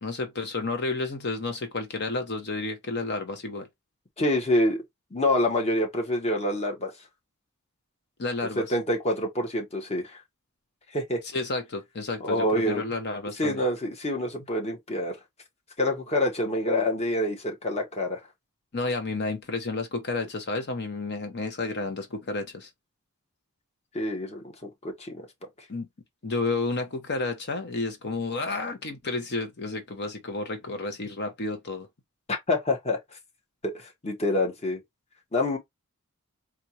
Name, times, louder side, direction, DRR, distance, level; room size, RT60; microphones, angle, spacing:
voice 1, 0.0-3.7 8.2-8.6 11.3-13.6 18.7-22.7 25.7-25.9 26.2-31.9, left 3 dB, 50° left, 0.8 m, -31 dB
voice 2, 4.2-4.8 5.1-6.9 8.6-10.2 10.9-11.2 12.2-12.8 13.4-15.2 15.8-18.2 23.9-25.3 32.3-33.0 33.6-34.8 35.3-35.6, left 1 dB, 30° left, 1.1 m, -26 dB
4.3 x 2.3 x 2.8 m
head